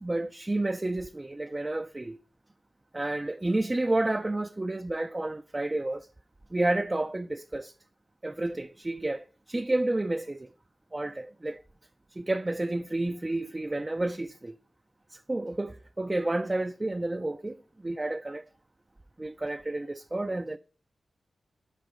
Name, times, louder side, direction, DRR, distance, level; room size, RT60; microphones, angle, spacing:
voice 1, 0.0-2.2 2.9-6.1 6.5-7.7 8.2-10.5 10.9-11.6 12.1-14.6 15.1-18.4 19.2-20.6, right 2 dB, 25° right, 0.3 m, -30 dB
6.2 x 4.4 x 3.7 m
cardioid pair, 50°, 0 cm